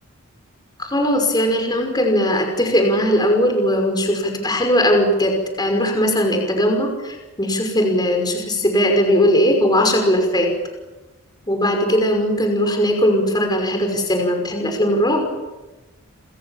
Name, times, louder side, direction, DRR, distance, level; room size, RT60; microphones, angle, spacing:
voice 1, 0.8-10.5 11.5-15.2, equal, 20° left, 3 dB, 5.6 m, -19 dB
29.5 x 26.5 x 7.4 m, 1.1 s
head